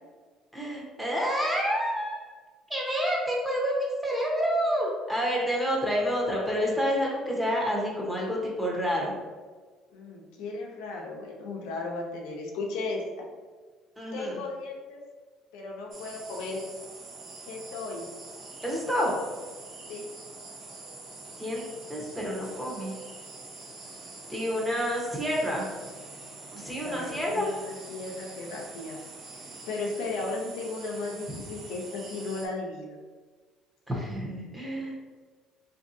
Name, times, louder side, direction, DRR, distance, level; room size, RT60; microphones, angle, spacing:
voice 1, 0.5-2.2 2.7-9.1 14.0-14.4 18.6-19.1 21.4-21.6 21.9-22.9 24.3-25.7 26.5-27.5 33.9-34.9, equal, 10° right, -3 dB, 0.9 m, -28 dB
voice 2, 9.9-13.3 14.1-15.0 15.5-16.6 17.4-18.1 19.9-20.1 26.7-29.0 29.6-33.0, left 3 dB, 85° left, 0 dB, 0.6 m, -35 dB
sound 1, 15.9-32.5, right 3 dB, 55° right, 0.7 m, -45 dB
3.4 x 2.7 x 2.6 m, 1.4 s
supercardioid pair, 95°, 0 cm